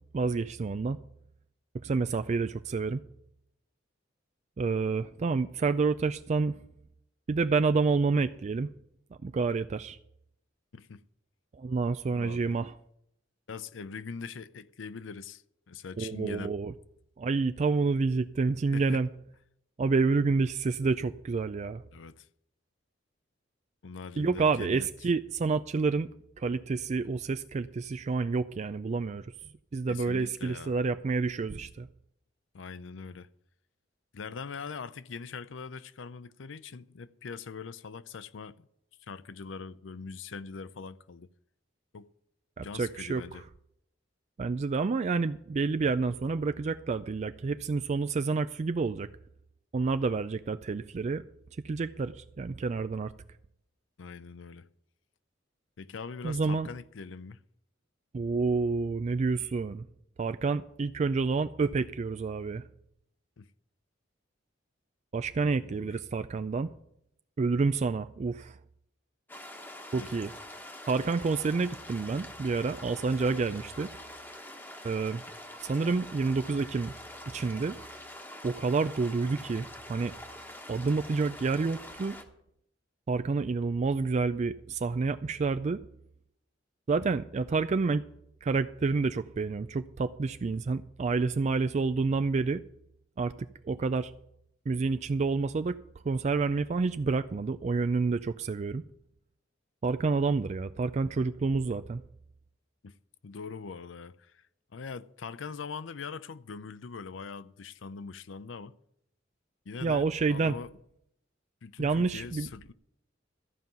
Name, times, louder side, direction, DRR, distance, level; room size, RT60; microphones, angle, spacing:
voice 1, 0.1-1.0 1.8-3.0 4.6-6.5 7.3-8.7 9.2-10.0 11.6-12.7 16.0-16.7 17.2-19.1 19.8-21.8 24.2-26.1 26.4-29.2 29.7-31.9 42.6-43.2 44.4-49.1 49.7-51.2 51.6-53.1 56.2-56.7 58.1-59.8 60.2-62.6 65.1-66.7 67.4-68.5 69.9-70.3 70.9-73.9 74.8-75.2 75.6-76.9 77.3-77.8 78.4-80.1 80.7-82.2 83.1-85.8 86.9-88.0 88.4-92.6 93.2-93.3 93.6-94.1 94.7-95.8 96.1-98.8 99.8-102.0 109.8-110.5 111.8-112.5, right 4 dB, 35° right, 0.3 m, -29 dB
voice 2, 10.7-11.0 12.1-12.6 13.5-16.5 18.7-19.0 21.9-22.3 23.8-24.9 29.9-30.7 32.5-33.3 34.1-38.7 39.1-41.3 41.9-42.1 42.6-43.4 54.0-54.7 55.8-57.4 63.4-63.5 65.6-66.0 70.0-70.2 102.8-103.0 103.2-104.5 104.7-108.7 109.7-110.7 111.6-112.7, left 5 dB, 80° left, 0.6 m, -42 dB
sound 1, 69.3-82.2, left 1 dB, 10° left, 1.2 m, -45 dB
14.0 x 5.5 x 9.0 m
head